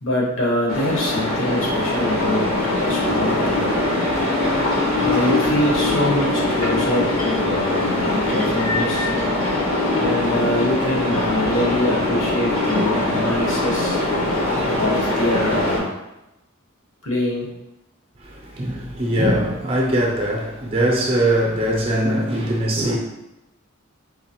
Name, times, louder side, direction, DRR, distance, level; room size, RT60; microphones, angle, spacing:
voice 1, 0.0-2.5 2.8-3.7 5.0-9.1 10.0-14.0 14.5-16.0 17.0-17.5, left 1 dB, 65° left, 1.0 m, -24 dB
sound 1, 0.7-15.8, left 2 dB, 85° left, 1.4 m, -22 dB
voice 2, 18.2-23.0, right 1 dB, 25° right, 0.5 m, -21 dB
3.7 x 3.0 x 2.9 m
head